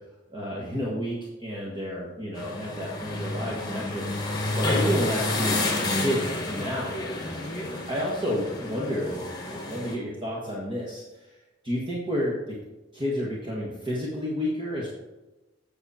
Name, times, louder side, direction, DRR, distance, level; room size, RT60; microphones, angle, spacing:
voice 1, 0.3-5.6 6.0-11.3 11.6-12.6 12.9-14.9, equal, 25° right, -4 dB, 1.4 m, -31 dB
sound 1, 2.3-9.9, left 2 dB, 20° left, 1.5 m, -30 dB
8.0 x 6.8 x 4.2 m, 1.1 s
head